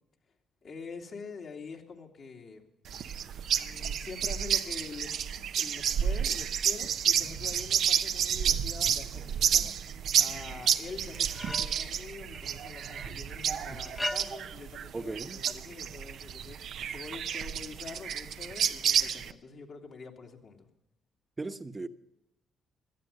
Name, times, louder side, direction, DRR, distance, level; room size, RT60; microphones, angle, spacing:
voice 1, 0.6-2.6 3.5-20.7, left 5 dB, 60° left, 1 dB, 2.6 m, -45 dB
sound 1, 2.9-19.3, right 8 dB, 70° right, 0.7 m, -30 dB
sound 2, 11.2-11.9 12.3-13.2 13.8-14.6 15.5-15.6, left 1 dB, 15° left, 0.9 m, -38 dB
voice 2, 14.9-15.4 21.4-21.9, right 3 dB, 30° right, 9 dB, 1.2 m, -37 dB
18.0 x 12.5 x 5.5 m, 0.83 s
supercardioid pair, 60°, 0 cm